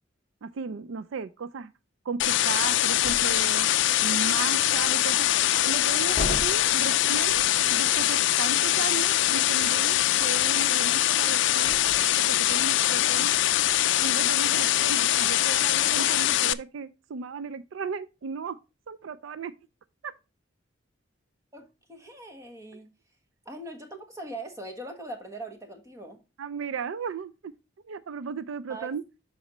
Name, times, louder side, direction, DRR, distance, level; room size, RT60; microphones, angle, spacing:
voice 1, 0.4-1.7 2.0-3.7 4.0-5.3 5.6-11.8 12.3-13.4 14.0-18.6 18.9-19.5 20.0-20.1 22.7-22.8 26.4-27.5 27.8-29.0, right 5 dB, 85° right, 0.4 m, -35 dB
sound 1, 2.2-16.5, left 13 dB, 70° left, 0.4 m, -23 dB
sound 2, 3.0-3.8 6.1-7.7 11.6-12.6, left 1 dB, 35° left, 0.8 m, -36 dB
voice 2, 21.5-22.9 23.4-26.2 28.7-28.9, right 1 dB, 15° right, 1.2 m, -41 dB
12.0 x 4.2 x 2.9 m
head